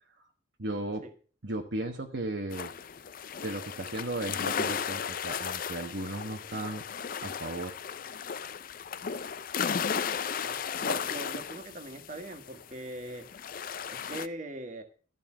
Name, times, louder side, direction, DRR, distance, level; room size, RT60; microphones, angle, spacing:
voice 1, 0.6-1.0 1.4-2.7 3.4-6.8 7.2-7.8, right 2 dB, 60° right, 3 dB, 1.2 m, -35 dB
sound 1, 2.5-12.8 13.1-14.3, left 7 dB, 45° left, 0.4 m, -35 dB
voice 2, 10.4-13.3 13.9-14.8, right 1 dB, 40° right, 6 dB, 1.6 m, -41 dB
13.5 x 5.4 x 7.5 m, 0.40 s
head